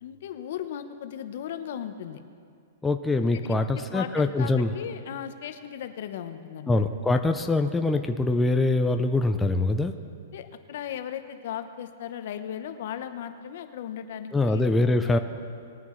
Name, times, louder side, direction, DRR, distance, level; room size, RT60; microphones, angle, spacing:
voice 1, 0.0-2.2 3.5-3.6 3.9-6.8 10.3-14.7, left 9 dB, 60° left, 9 dB, 0.9 m, -36 dB
voice 2, 2.8-4.7 6.7-9.9 14.3-15.2, left 2 dB, 10° left, 5 dB, 0.5 m, -23 dB
20.5 x 9.4 x 3.2 m, 2.3 s
hypercardioid pair, 145°, 0 cm